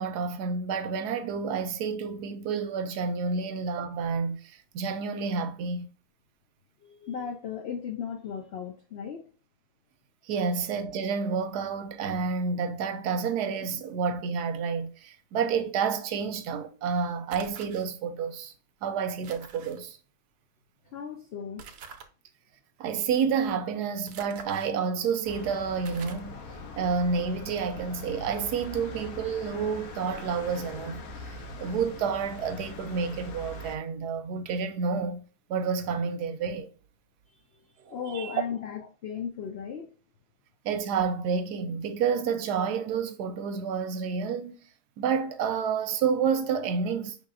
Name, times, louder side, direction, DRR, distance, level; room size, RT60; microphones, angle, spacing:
voice 1, 0.0-5.9 10.3-18.5 18.8-20.0 22.8-26.4 26.8-31.0 31.6-35.2 35.5-36.7 37.8-38.3 40.6-44.5 45.0-47.2, right 6 dB, 90° right, 1.2 m, -29 dB
voice 2, 6.8-9.3 20.9-21.7 37.3-39.9, left 7 dB, 90° left, 0.5 m, -36 dB
sound 1, 17.3-17.9 19.2-19.8 21.6-22.1 24.1-24.7 25.3-25.4 25.9-26.3, right 6 dB, 70° right, 1.1 m, -46 dB
sound 2, 25.2-33.8, left 2 dB, 70° left, 1.2 m, -42 dB
5.4 x 3.5 x 2.5 m
omnidirectional pair, 1.7 m